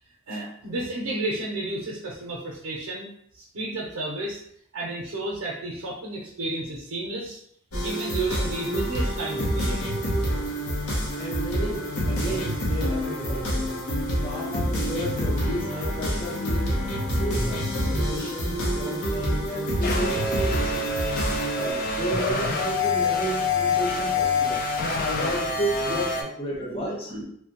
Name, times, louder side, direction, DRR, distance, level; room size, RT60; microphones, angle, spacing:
voice 1, 0.3-4.4 4.7-7.4 7.8-9.9 23.9-24.0 26.7-27.2, right 2 dB, 85° right, -4 dB, 0.6 m, -32 dB
sound 1, 7.7-21.7, equal, 85° left, 0.8 m, -27 dB
voice 2, 11.2-13.8 14.2-16.7 17.1-20.9 21.5-24.6 25.0-27.1, right 1 dB, 25° left, -4 dB, 0.8 m, -32 dB
sound 2, 19.8-26.2, left 3 dB, 45° left, 0.4 m, -26 dB
3.2 x 2.1 x 2.8 m, 0.67 s
head